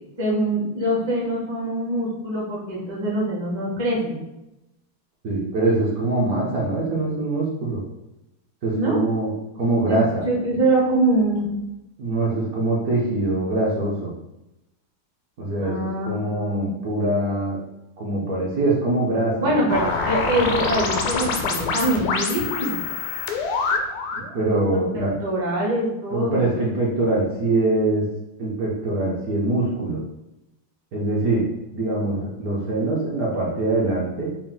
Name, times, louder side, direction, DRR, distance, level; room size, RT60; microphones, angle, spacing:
voice 1, 0.2-4.2 8.7-9.0 9.9-10.0 10.2-11.6 15.6-16.6 19.3-22.8 24.7-26.5, right 1 dB, 40° right, -4 dB, 0.4 m, -24 dB
voice 2, 5.2-7.8 8.6-9.3 9.6-10.2 12.0-14.1 15.4-17.6 18.0-19.6 24.3-25.1 26.1-28.0 28.4-30.0 30.9-31.5 31.7-34.3, right 2 dB, 65° right, -5 dB, 0.9 m, -23 dB
sound 1, 19.7-24.3, left 4 dB, 90° left, 1.4 m, -25 dB
4.3 x 2.1 x 3.8 m, 0.91 s
omnidirectional pair, 2.2 m